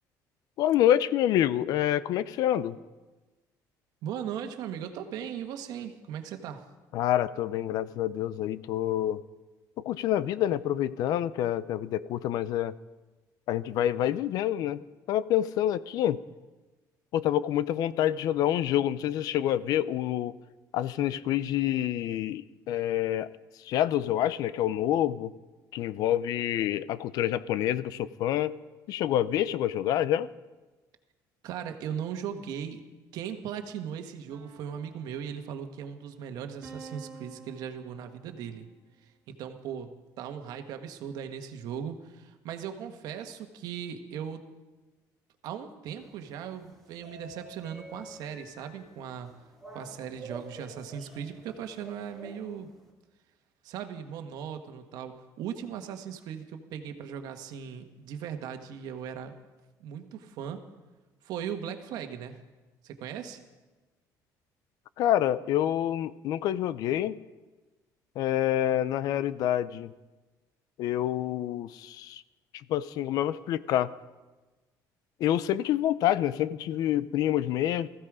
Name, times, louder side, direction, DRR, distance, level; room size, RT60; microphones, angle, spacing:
voice 1, 0.6-2.8 6.9-9.2 9.8-12.7 13.5-14.8 15.1-16.2 17.1-20.3 20.7-23.3 23.6-25.3 25.7-28.6 28.9-30.3 65.0-67.2 68.2-69.9 70.8-72.2 72.7-73.9 75.2-77.9, left 12 dB, 60° left, 17 dB, 0.6 m, -27 dB
voice 2, 4.0-6.6 31.4-32.8 33.1-38.7 39.3-44.4 45.4-49.3 49.7-52.7 53.6-59.3 59.8-60.6 61.2-62.4 62.8-63.4, right 8 dB, 65° right, 6 dB, 1.5 m, -38 dB
sound 1, 34.3-35.9 36.6-38.6, right 5 dB, 30° right, 3.6 m, -50 dB
sound 2, 45.9-52.9, right 2 dB, 5° left, 2.9 m, -49 dB
19.0 x 15.0 x 5.0 m, 1.2 s
cardioid pair, 165°, 7 cm